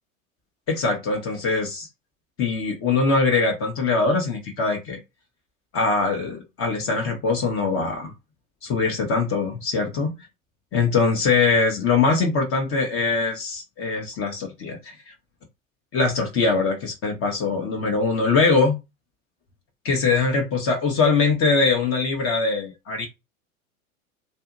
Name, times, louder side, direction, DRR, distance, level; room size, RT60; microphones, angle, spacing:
voice 1, 0.7-1.9 2.4-5.0 5.7-8.1 8.6-10.2 10.7-14.9 15.9-18.8 19.8-23.1, left 4 dB, 30° left, 0.9 m, -22 dB
2.8 x 2.7 x 2.4 m
hypercardioid pair, 95°, 42 cm